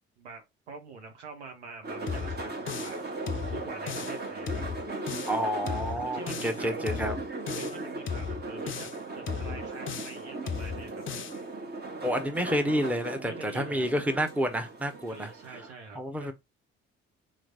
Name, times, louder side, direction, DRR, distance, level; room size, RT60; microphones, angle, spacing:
voice 1, 0.2-3.0 3.5-4.6 6.1-6.8 7.5-8.9 9.1-11.0 13.2-13.9 15.1-16.3, right 4 dB, 80° right, 1.0 m, -45 dB
sound 1, 1.8-15.7, right 2 dB, 30° right, 1.4 m, -38 dB
sound 2, 2.1-3.0 3.3-4.2 4.5-5.4 5.7-6.6 6.9-7.8 8.1-9.0 9.3-10.2 10.5-11.4, left 7 dB, 35° left, 0.7 m, -36 dB
voice 2, 5.3-7.2 12.0-15.3 15.9-16.3, equal, 5° right, 1.0 m, -29 dB
3.9 x 3.2 x 3.8 m
figure-of-eight pair, 45°, 33 cm